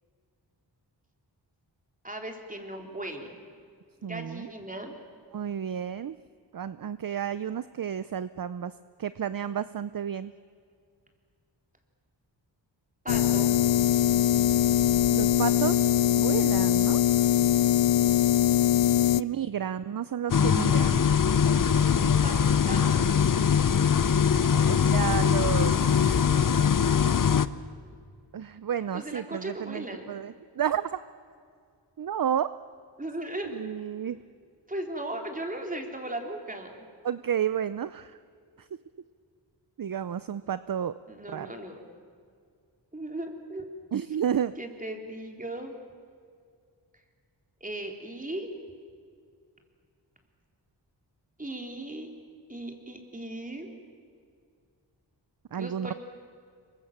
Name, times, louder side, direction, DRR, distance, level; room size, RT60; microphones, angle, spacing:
voice 1, 2.0-3.4 4.0-4.9 13.0-13.5 17.9-18.4 18.7-19.4 22.0-23.2 24.5-24.7 26.0-26.5 28.9-30.0 33.0-33.5 34.7-36.8 41.1-41.8 42.9-43.7 44.6-45.7 47.6-48.5 51.4-52.1 52.5-53.7 55.5-55.9, right 1 dB, 20° right, 3 dB, 3.5 m, -38 dB
voice 2, 4.0-4.5 5.3-6.2 6.5-8.7 9.0-10.3 15.1-17.3 19.2-21.0 24.7-26.2 28.3-30.9 32.0-32.5 33.4-34.2 37.0-38.2 38.6-38.7 39.8-40.9 41.3-41.5 43.9-44.6 55.5-55.9, right 9 dB, 50° right, 14 dB, 0.6 m, -31 dB
sound 1, 13.1-19.2, left 11 dB, 80° left, 0.6 m, -22 dB
sound 2, 20.3-27.5, left 7 dB, 45° left, 0.8 m, -22 dB
27.5 x 24.0 x 7.3 m, 2.2 s
wide cardioid pair, 95°, 43 cm